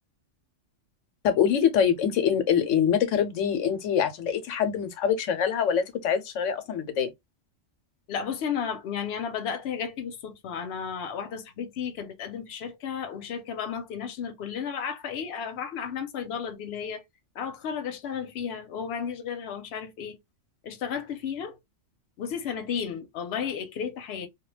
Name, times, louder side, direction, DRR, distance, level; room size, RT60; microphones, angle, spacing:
voice 1, 1.2-7.1, left 8 dB, 85° left, 1.0 m, -24 dB
voice 2, 8.1-17.0 17.4-20.2 20.6-21.6 22.2-24.3, left 7 dB, 65° left, 0.9 m, -33 dB
2.3 x 2.2 x 3.1 m
omnidirectional pair, 1.3 m